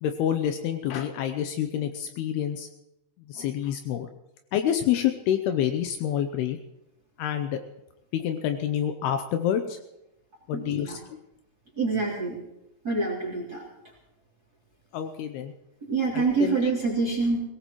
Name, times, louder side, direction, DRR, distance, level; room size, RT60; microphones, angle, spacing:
voice 1, 0.0-2.7 3.3-4.1 4.5-6.6 7.2-7.6 8.1-9.8 10.5-11.0 14.9-15.5 16.1-16.7, left 10 dB, 90° left, 7 dB, 2.2 m, -27 dB
voice 2, 10.5-11.0 11.8-12.4 12.8-13.6 15.9-17.4, right 3 dB, 25° right, -3 dB, 2.8 m, -26 dB
22.0 x 17.5 x 3.1 m, 0.88 s
omnidirectional pair, 5.6 m